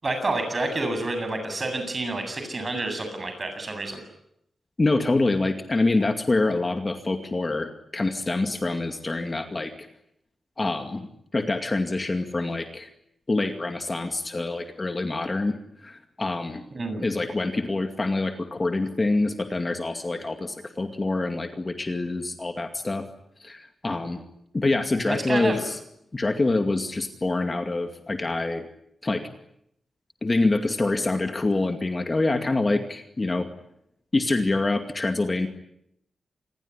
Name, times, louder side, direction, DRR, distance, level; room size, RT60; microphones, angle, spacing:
voice 1, 0.0-4.0 16.7-17.1 25.1-25.6, right 2 dB, 30° right, 7 dB, 8.0 m, -28 dB
voice 2, 4.8-9.7 10.6-11.0 11.3-12.9 13.3-15.6 15.8-16.6 17.0-23.0 23.4-24.2 24.5-25.8 26.1-28.7 29.0-29.2 30.2-33.5 34.1-35.5, left 2 dB, 25° left, 5 dB, 2.3 m, -26 dB
28.0 x 21.5 x 10.0 m, 0.78 s
wide cardioid pair, 135°, 0 cm